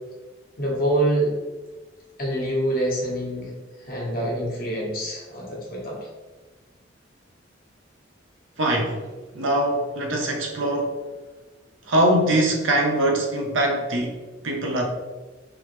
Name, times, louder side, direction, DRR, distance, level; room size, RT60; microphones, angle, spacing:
voice 1, 0.6-1.3 2.2-3.5 3.9-6.0, right 1 dB, 45° left, -3 dB, 1.1 m, -25 dB
voice 2, 8.6-9.1 9.3-11.0 11.8-14.9, right 1 dB, 85° right, 2 dB, 0.7 m, -22 dB
3.4 x 3.1 x 3.2 m, 1.2 s
head